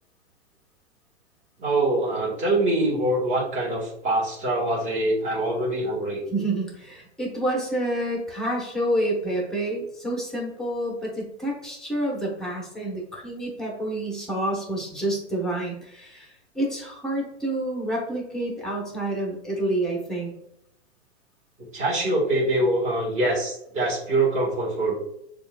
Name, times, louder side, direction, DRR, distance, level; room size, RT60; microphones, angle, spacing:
voice 1, 1.6-6.2 21.7-25.0, right 2 dB, 20° right, -3 dB, 1.6 m, -24 dB
voice 2, 6.3-20.3, right 1 dB, ahead, -2 dB, 1.1 m, -28 dB
6.7 x 2.5 x 2.4 m, 0.76 s
hypercardioid pair, 145°, 33 cm